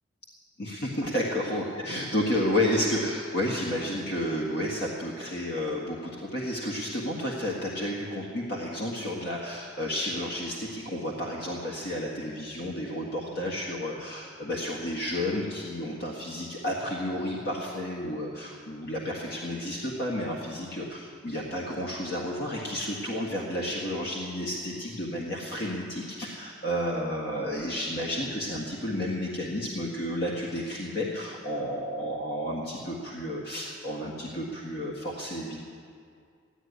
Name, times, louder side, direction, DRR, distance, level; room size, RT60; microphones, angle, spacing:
voice 1, 0.6-35.6, left 1 dB, 55° left, -3 dB, 1.7 m, -31 dB
15.5 x 9.7 x 9.6 m, 2.3 s
head